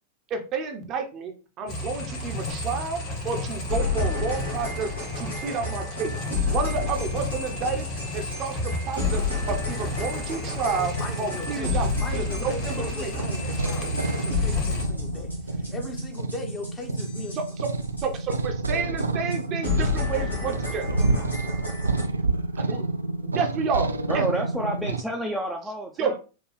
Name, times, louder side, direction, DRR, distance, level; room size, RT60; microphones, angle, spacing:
voice 1, 0.3-4.9 5.2-6.1 6.4-10.9 11.2-13.1 17.3-17.7 18.0-20.9 22.6-22.8 23.2-23.9 24.1-24.2 26.0-26.2, right 5 dB, 35° right, 4 dB, 0.7 m, -30 dB
sound 1, 1.7-14.8, left 1 dB, 40° left, 1.3 m, -33 dB
sound 2, 3.7-18.4 18.6-18.7 19.0-19.1 19.3-19.4 19.6-22.0, left 4 dB, 80° left, 1.3 m, -31 dB
voice 2, 10.4-17.4 18.8-19.0 20.9-21.3, left 2 dB, 20° left, 4 dB, 0.9 m, -39 dB
sound 3, 10.4-25.0, right 3 dB, 80° right, 0.3 m, -29 dB
voice 3, 24.1-26.2, right 1 dB, ahead, 0 dB, 0.6 m, -29 dB
4.4 x 2.3 x 3.2 m, 0.33 s
figure-of-eight pair, 90°, 0 cm